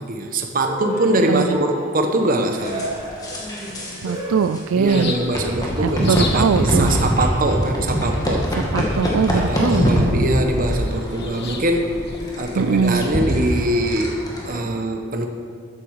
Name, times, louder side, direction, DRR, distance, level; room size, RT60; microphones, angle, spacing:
voice 1, 0.0-2.9 4.8-8.5 9.3-12.1 12.4-15.3, right 1 dB, 40° right, 4 dB, 1.1 m, -22 dB
Cheering, 0.6-5.5, right 1 dB, 20° right, 3.1 m, -32 dB
sound 1, 2.6-4.1 4.4-4.6 5.3-14.6, equal, 15° left, 2.0 m, -24 dB
voice 2, 4.0-5.2 5.8-6.9 8.7-10.1 12.6-13.1, right 5 dB, 75° right, 15 dB, 0.4 m, -21 dB
sound 2, 4.8-14.0, left 2 dB, 50° left, 1.3 m, -35 dB
14.0 x 9.9 x 4.8 m, 2.2 s
head